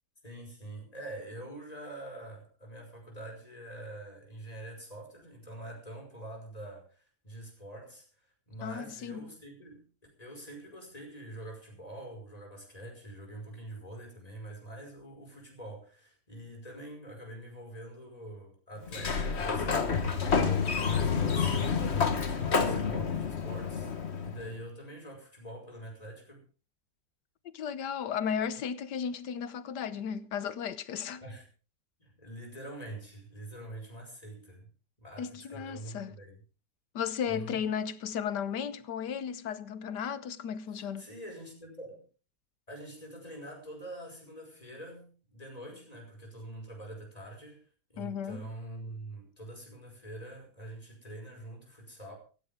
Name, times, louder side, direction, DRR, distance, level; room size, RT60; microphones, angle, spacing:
voice 1, 0.2-8.1 8.5-23.9 24.2-26.4 31.2-31.4 32.0-34.7 35.0-36.4 37.3-37.6 41.0-42.1 42.7-47.6 47.9-52.1, right 1 dB, 20° left, 5.5 m, -45 dB
voice 2, 8.6-9.2 27.4-31.2 35.2-36.1 36.9-41.1 48.0-48.5, left 7 dB, 90° left, 1.6 m, -35 dB
Sliding door, 18.8-24.5, left 5 dB, 40° left, 1.6 m, -29 dB
16.0 x 15.5 x 3.7 m
omnidirectional pair, 1.7 m